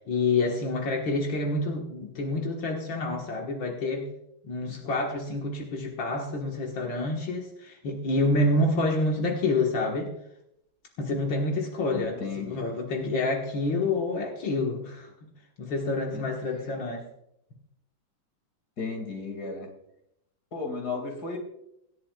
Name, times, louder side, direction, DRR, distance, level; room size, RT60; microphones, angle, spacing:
voice 1, 0.1-4.1 4.4-10.1 11.0-15.3 15.6-17.1, left 2 dB, 80° left, -1 dB, 2.3 m, -28 dB
voice 2, 11.9-12.7 16.1-16.2 18.8-19.7 20.5-21.4, left 4 dB, 55° left, 3 dB, 2.9 m, -34 dB
25.0 x 10.5 x 2.4 m, 0.79 s
omnidirectional pair, 2.1 m